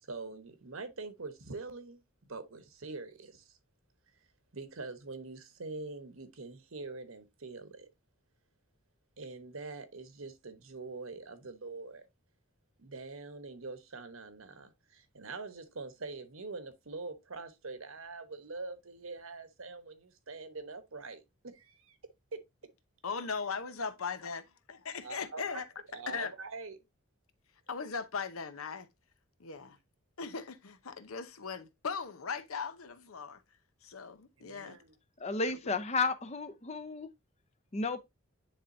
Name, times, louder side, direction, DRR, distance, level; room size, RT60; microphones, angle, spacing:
voice 1, 0.0-2.0 2.3-3.6 4.5-7.9 9.2-12.0 12.8-22.0 22.3-22.4 25.0-25.6 25.9-26.8 34.4-34.9, right 3 dB, 75° right, 1.1 m, -44 dB
voice 2, 23.0-24.4 24.7-25.7 26.1-26.3 27.7-28.9 29.4-29.8 30.2-33.4 33.8-34.8, left 5 dB, 85° left, 0.8 m, -38 dB
voice 3, 35.2-37.1 37.7-38.0, left 3 dB, 30° left, 0.7 m, -32 dB
10.0 x 3.5 x 2.7 m
head